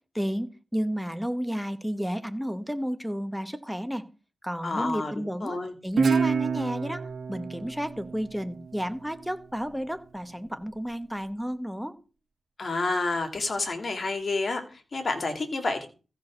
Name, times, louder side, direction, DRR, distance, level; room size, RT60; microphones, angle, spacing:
voice 1, 0.1-4.1 4.4-12.0, equal, ahead, 10 dB, 1.0 m, -32 dB
voice 2, 4.6-5.7 12.6-15.9, left 3 dB, 45° left, 5 dB, 2.6 m, -29 dB
Guitar, 6.0-9.2, right 5 dB, 70° right, 1.3 m, -28 dB
14.5 x 5.0 x 6.3 m, 0.35 s
wide cardioid pair, 105°, 0 cm